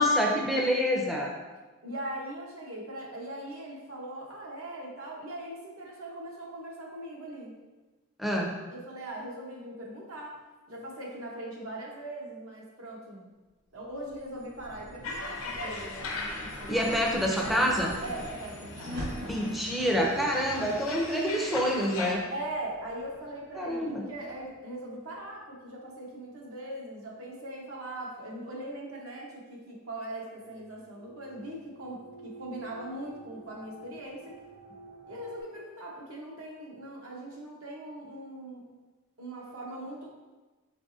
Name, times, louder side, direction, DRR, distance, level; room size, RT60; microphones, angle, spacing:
voice 1, 0.0-1.3 8.2-8.5 16.7-17.9 19.2-22.2 23.6-24.0, equal, ahead, -2 dB, 0.5 m, -27 dB
voice 2, 1.8-7.5 8.7-10.4 10.7-13.3 13.7-16.8 18.0-19.1 22.3-34.4 35.1-38.6 39.2-40.1, right 1 dB, 80° right, -3 dB, 1.0 m, -40 dB
sound 1, 13.9-24.4, equal, 60° right, 1.3 m, -43 dB
sound 2, 15.0-22.1, left 3 dB, 70° left, 0.7 m, -40 dB
sound 3, 30.7-35.4, right 2 dB, 35° right, 0.7 m, -50 dB
4.7 x 4.0 x 2.7 m, 1.2 s
head